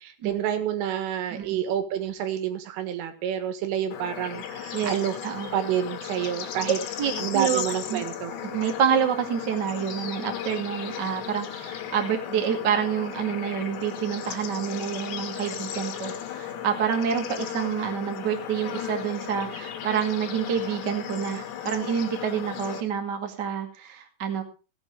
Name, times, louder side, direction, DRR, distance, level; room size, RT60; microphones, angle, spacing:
voice 1, 0.0-5.2 5.5-6.8 7.2-8.4, right 10 dB, 85° right, 8 dB, 4.1 m, -28 dB
Bird / Insect / Frog, 3.9-22.8, left 9 dB, 65° left, 3.5 m, -36 dB
voice 2, 4.7-5.5 7.0-7.6 7.9-8.0 8.4-24.4, right 8 dB, 50° right, 3 dB, 1.3 m, -28 dB
16.5 x 8.8 x 4.7 m, 0.35 s
omnidirectional pair, 5.6 m